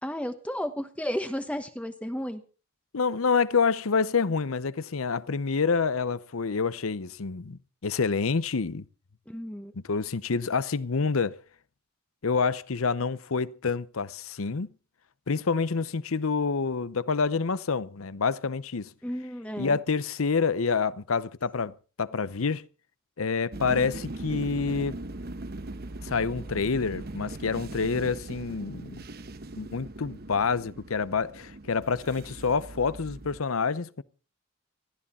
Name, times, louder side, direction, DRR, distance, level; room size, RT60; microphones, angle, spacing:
voice 1, 0.0-2.4 9.3-9.7 19.0-19.8, equal, 5° left, 1.0 m, -33 dB
voice 2, 2.9-8.8 9.7-11.4 12.2-14.7 15.3-18.9 19.6-22.7 23.2-25.0 26.0-29.0 29.6-34.0, left 5 dB, 85° left, 0.8 m, -27 dB
sound 1, 23.5-33.4, right 2 dB, 50° right, 1.0 m, -40 dB
20.0 x 14.0 x 4.2 m
head